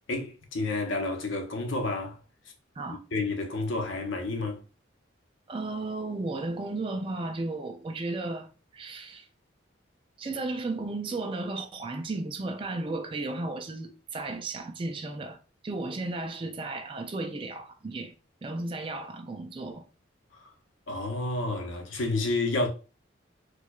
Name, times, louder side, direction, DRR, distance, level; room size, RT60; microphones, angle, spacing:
voice 1, 0.1-2.2 2.9-4.6 20.3-20.5 20.9-22.7, left 2 dB, 80° left, 0.8 m, -30 dB
voice 2, 5.5-9.3 10.2-15.4 15.6-18.1 18.4-19.9, right 2 dB, 25° right, 0.3 m, -34 dB
4.5 x 2.2 x 2.3 m
head